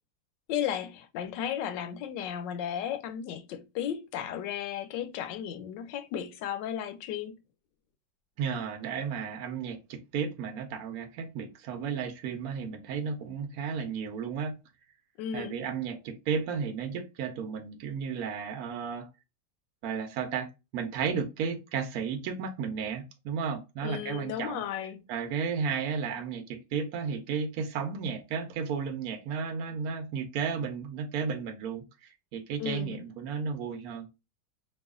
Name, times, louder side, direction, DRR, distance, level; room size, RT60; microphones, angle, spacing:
voice 1, 0.5-7.3 15.2-15.6 23.8-25.0 32.6-33.0, left 9 dB, 85° left, 1.2 m, -34 dB
voice 2, 8.4-14.5 15.3-19.1 19.8-24.6 25.1-34.1, right 6 dB, 65° right, 1.1 m, -33 dB
3.1 x 2.4 x 3.6 m
omnidirectional pair, 1.9 m